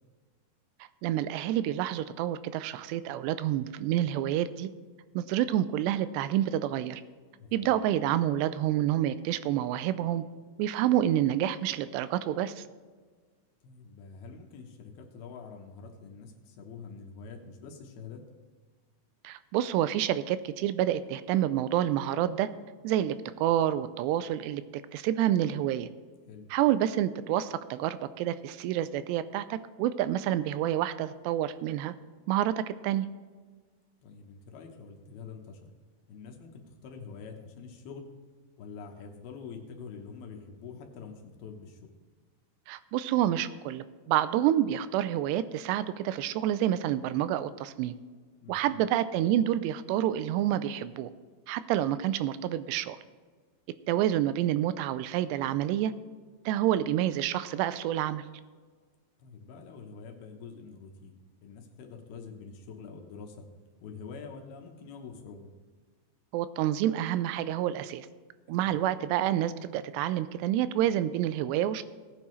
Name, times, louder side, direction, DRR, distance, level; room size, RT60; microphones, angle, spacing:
voice 1, 1.0-4.7 5.2-7.0 7.5-10.2 10.6-12.6 19.2-22.5 22.8-24.6 24.9-25.9 26.5-31.9 32.3-33.1 42.7-47.9 48.5-51.1 51.5-53.0 53.9-55.9 56.5-58.2 66.3-68.1 68.5-71.8, right 12 dB, 85° right, 14 dB, 2.6 m, -28 dB
voice 2, 7.4-7.7 13.6-18.2 26.3-26.5 34.0-35.7 36.1-38.1 38.6-41.9 48.4-48.8 59.2-61.1 61.4-63.5 63.8-65.5 68.6-68.7, left 5 dB, 70° left, 2 dB, 2.8 m, -46 dB
17.5 x 8.9 x 3.2 m, 1.5 s
omnidirectional pair, 5.0 m